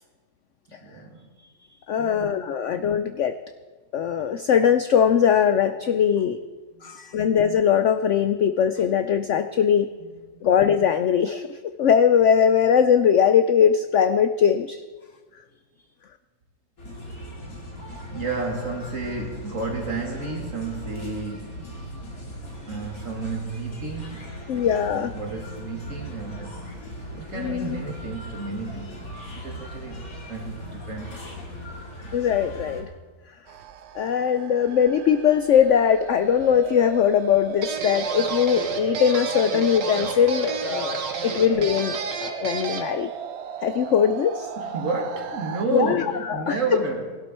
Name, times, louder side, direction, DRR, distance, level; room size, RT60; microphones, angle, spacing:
voice 1, 0.7-1.3 2.0-2.5 6.7-7.2 10.0-10.2 18.0-21.8 22.3-22.4 22.7-26.6 27.1-30.0 30.3-31.3 41.2-41.3 44.6-47.2, right 3 dB, 45° right, 1 dB, 2.5 m, -32 dB
voice 2, 1.9-3.3 3.9-6.4 6.8-9.9 10.4-14.8 24.5-25.1 27.4-27.8 32.1-32.9 34.0-43.1 43.6-44.5 45.7-46.6, left 8 dB, 80° left, 9 dB, 0.6 m, -21 dB
sound 1, 16.8-32.8, equal, 50° left, 3.0 m, -38 dB
sound 2, 33.5-45.7, right 7 dB, 65° right, 0.6 m, -34 dB
sound 3, 37.6-42.9, right 5 dB, 85° right, 2.1 m, -32 dB
19.5 x 12.0 x 4.4 m, 1.3 s
omnidirectional pair, 1.9 m